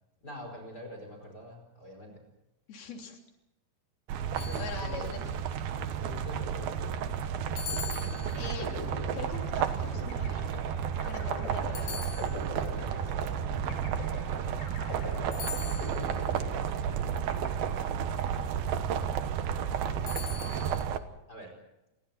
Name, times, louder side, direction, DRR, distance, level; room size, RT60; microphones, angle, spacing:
voice 1, 0.2-2.2 4.3-5.2 6.0-7.1 12.7-14.0 15.9-17.2 17.8-19.4 21.3-21.5, left 1 dB, 25° left, 3 dB, 5.3 m, -47 dB
voice 2, 2.7-3.2 4.6-5.2 8.4-8.7 9.1-10.5 11.0-12.1, left 5 dB, 70° left, 2 dB, 5.2 m, -42 dB
sound 1, 4.1-21.0, right 8 dB, 70° right, 3.0 m, -32 dB
sound 2, 4.4-5.3 7.6-8.8 11.8-12.8 15.3-16.3 20.1-20.9, left 9 dB, 90° left, 3.8 m, -42 dB
sound 3, 7.7-18.1, left 3 dB, 50° left, 6.2 m, -45 dB
29.5 x 23.0 x 4.4 m, 0.93 s
omnidirectional pair, 4.6 m